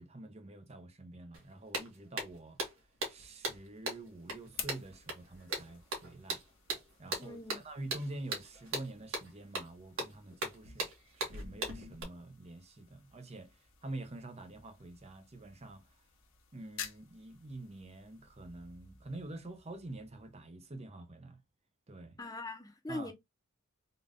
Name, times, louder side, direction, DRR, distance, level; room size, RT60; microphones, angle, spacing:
voice 1, 0.0-2.6 3.1-6.4 7.0-10.9 11.1-15.8 16.5-21.4 21.9-22.2 22.9-23.1, right 2 dB, 30° right, 0.6 m, -47 dB
sound 1, 1.3-1.4 1.7-12.0, right 2 dB, 70° right, 1.6 m, -39 dB
sound 2, 3.7-20.7, left 8 dB, 70° left, 1.0 m, -53 dB
voice 2, 7.2-7.6 22.2-23.1, left 2 dB, 15° left, 0.8 m, -41 dB
3.8 x 2.5 x 3.5 m
head